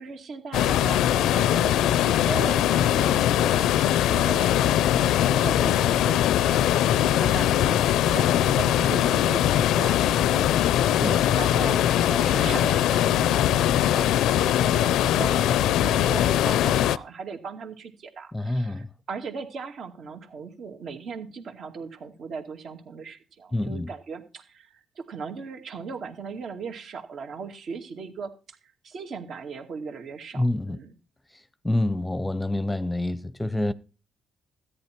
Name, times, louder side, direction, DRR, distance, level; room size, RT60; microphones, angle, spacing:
voice 1, 0.0-28.6 28.8-30.9, right 5 dB, 60° right, 2.2 m, -38 dB
sound 1, 0.5-17.0, left 11 dB, 85° left, 0.5 m, -21 dB
voice 2, 10.9-11.3 18.3-18.9 23.5-23.9 30.3-30.8 31.6-33.7, left 1 dB, 10° left, 0.7 m, -27 dB
13.5 x 9.9 x 4.5 m
cardioid pair, 90°, 0 cm